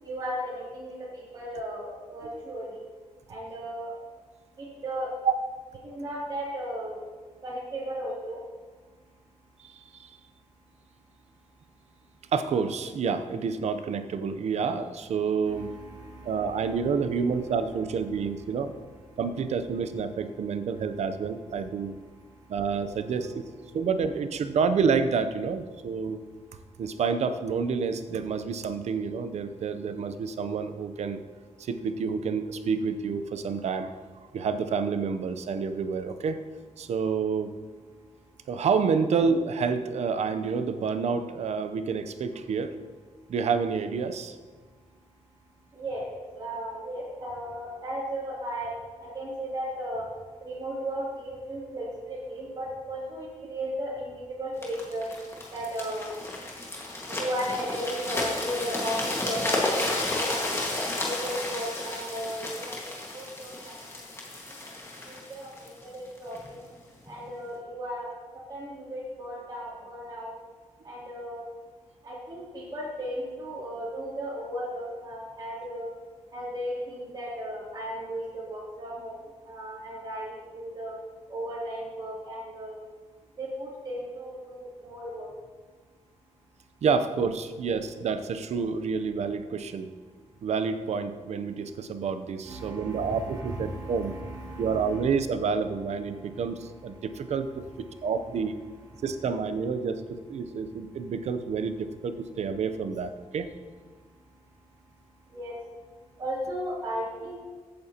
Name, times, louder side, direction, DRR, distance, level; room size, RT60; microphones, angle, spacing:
voice 1, 0.0-2.8 3.3-3.9 4.6-5.1 5.8-7.0 7.4-8.4 15.4-17.0 17.3-17.4 22.1-22.6 23.1-23.3 23.7-23.8 45.7-46.0 46.3-48.7 49.0-50.1 50.4-55.1 55.5-56.1 57.1-60.6 61.0-63.7 65.0-66.6 67.1-68.1 68.3-70.3 70.8-71.4 72.0-75.9 76.3-81.0 81.3-82.8 83.4-85.3 92.4-95.1 96.1-97.1 97.9-98.1 98.9-99.0 105.3-105.5 106.2-107.4, equal, 35° right, -6 dB, 2.9 m, -36 dB
voice 2, 9.6-10.2 12.3-15.7 16.3-18.8 19.2-22.0 22.5-23.5 23.7-26.2 26.8-31.2 31.6-34.0 34.3-36.4 36.8-37.5 38.5-42.7 43.3-44.3 86.8-89.9 90.4-94.1 94.6-97.6 98.0-98.6 99.0-103.5, right 5 dB, 60° right, 10 dB, 0.7 m, -28 dB
sound 1, 54.6-66.5 67.1-67.2, left 2 dB, 20° left, 1.7 m, -32 dB
15.0 x 8.6 x 2.9 m, 1.4 s
wide cardioid pair, 175°, 12 cm